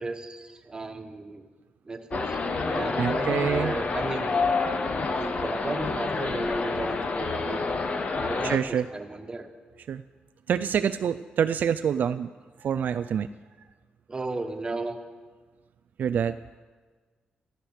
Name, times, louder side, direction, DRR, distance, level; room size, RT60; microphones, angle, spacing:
voice 1, 0.0-1.4 1.9-2.4 2.7-4.4 5.2-7.6 8.2-9.5 14.1-15.0, right 3 dB, 25° right, 5 dB, 1.4 m, -34 dB
sound 1, 2.1-8.6, left 4 dB, 45° left, 1.1 m, -28 dB
voice 2, 3.0-3.8 8.4-8.9 9.9-10.0 10.5-12.3 12.6-13.3 16.0-16.3, right 8 dB, 65° right, 11 dB, 0.4 m, -26 dB
14.0 x 13.0 x 6.6 m, 1.5 s
cardioid pair, 115°, 3 cm